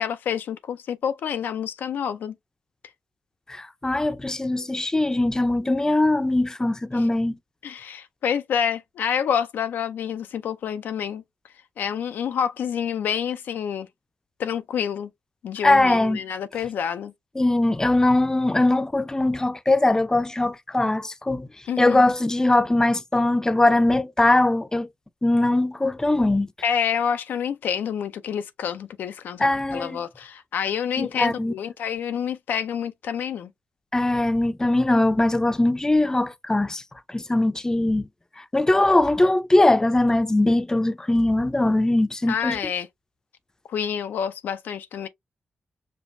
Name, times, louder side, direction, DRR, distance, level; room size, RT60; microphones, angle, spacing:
voice 1, 0.0-2.3 6.9-7.0 7.6-11.2 11.8-13.9 14.4-15.1 15.4-17.1 21.7-22.0 26.6-33.5 42.3-42.9 43.7-45.1, left 8 dB, 80° left, 0.4 m, -28 dB
voice 2, 3.5-7.4 15.6-16.2 17.4-21.5 21.8-24.9 25.2-26.5 29.4-30.0 31.0-31.5 33.9-36.8 37.1-38.1 38.4-42.6, left 2 dB, 20° left, 0.5 m, -21 dB
5.2 x 2.2 x 2.5 m
supercardioid pair, 50°, 3 cm